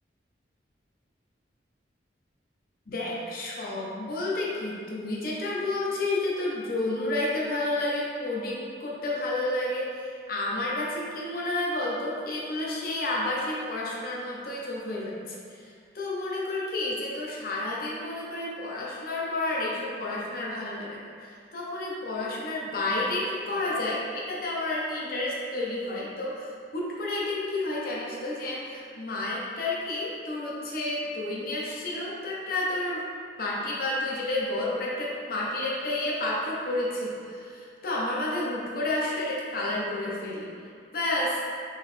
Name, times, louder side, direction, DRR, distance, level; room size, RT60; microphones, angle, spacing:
voice 1, 2.9-33.0 33.4-40.5 40.9-41.4, left 2 dB, 50° left, -5 dB, 0.7 m, -30 dB
3.9 x 3.1 x 3.1 m, 2.2 s
head